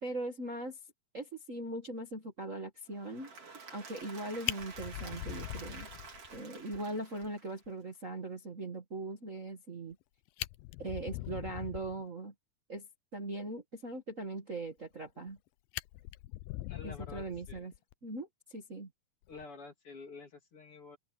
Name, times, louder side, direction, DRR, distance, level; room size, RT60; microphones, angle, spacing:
voice 1, 0.0-0.8 1.1-3.3 3.7-5.9 6.3-9.9 10.8-12.3 12.7-12.9 13.1-15.4 16.8-17.7 18.0-18.9, right 2 dB, 75° right, 0.7 m, -40 dB
Applause / Crowd, 2.9-7.9, right 4 dB, 35° right, 4.5 m, -50 dB
Fire, 4.0-4.1 4.4-6.4 6.7-6.8 7.2-7.3 7.7-7.8 9.9-10.0 10.3-12.0 14.8-15.4 15.7-17.9 19.2-19.4, left 18 dB, 85° left, 2.1 m, -41 dB
voice 2, 16.7-17.7 19.3-21.0, left 4 dB, 35° left, 3.6 m, -49 dB
open air
omnidirectional pair, 4.8 m